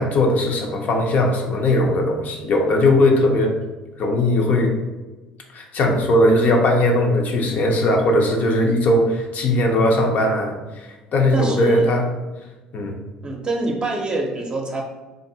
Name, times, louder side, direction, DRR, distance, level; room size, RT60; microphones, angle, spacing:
voice 1, 0.0-3.5 4.0-4.8 5.5-12.0 12.7-13.0, left 1 dB, 55° left, 1 dB, 0.6 m, -19 dB
voice 2, 11.3-11.9 13.2-14.8, right 2 dB, 25° right, 2 dB, 0.6 m, -25 dB
2.6 x 2.5 x 2.7 m, 1.2 s
hypercardioid pair, 65°, 3 cm